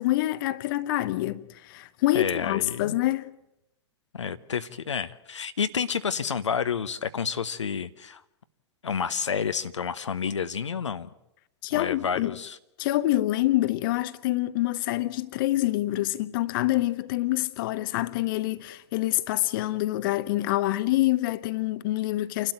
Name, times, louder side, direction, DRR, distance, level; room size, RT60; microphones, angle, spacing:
voice 1, 0.0-3.3 11.6-12.3 12.8-22.5, left 16 dB, 45° left, 0.9 m, -26 dB
voice 2, 2.1-3.0 4.1-8.2 8.8-11.1 11.7-12.6, left 6 dB, 75° left, 0.9 m, -30 dB
28.5 x 12.5 x 9.0 m
figure-of-eight pair, 105°, 15 cm